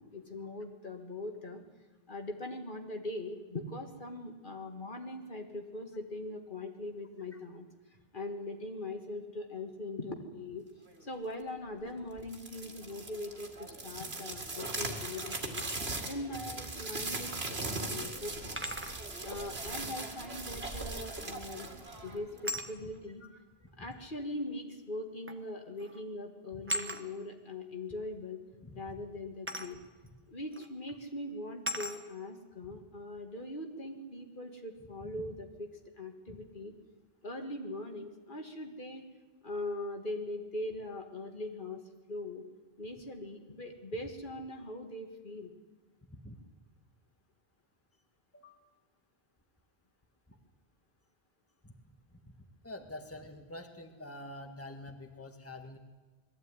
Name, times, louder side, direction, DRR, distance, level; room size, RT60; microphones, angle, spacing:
voice 1, 0.1-1.6 2.1-7.7 8.1-10.6 11.0-15.7 16.1-18.5 19.2-21.7 22.0-23.2 23.8-28.4 28.7-29.8 30.3-35.7 36.0-36.7 37.2-39.0 39.4-41.8 42.1-42.4 42.8-45.5, left 1 dB, 55° left, 4 dB, 2.0 m, -41 dB
sound 1, 12.2-22.5, right 2 dB, 75° right, 2.5 m, -39 dB
sound 2, 15.3-15.8 17.3-17.4 18.6-19.0 21.2-21.5 22.4-22.7 23.9-24.0 25.3-25.5 25.8-26.0 26.7-27.0 29.5-29.7 30.5-30.7 31.7-32.0, equal, 10° right, 1.3 m, -37 dB
voice 2, 23.2-23.9 28.6-29.0 35.0-35.3 36.3-36.4 46.1-46.4 48.3-48.6 50.3-50.4 51.6-51.7 52.6-55.8, left 1 dB, 15° left, 5 dB, 1.7 m, -47 dB
21.0 x 14.5 x 9.7 m, 1.3 s
omnidirectional pair, 1.1 m